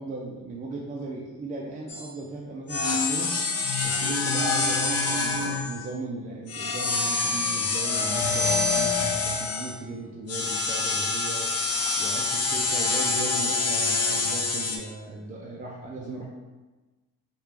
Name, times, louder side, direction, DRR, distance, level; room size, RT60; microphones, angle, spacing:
voice 1, 0.0-3.3 3.8-11.5 12.0-16.3, right 2 dB, 25° right, -3 dB, 0.3 m, -37 dB
sound 1, 1.9-2.1 2.7-5.9 6.5-9.8 10.3-14.8, left 3 dB, 40° left, 0.5 m, -26 dB
3.2 x 2.4 x 3.3 m, 1.2 s
cardioid pair, 105°, 37 cm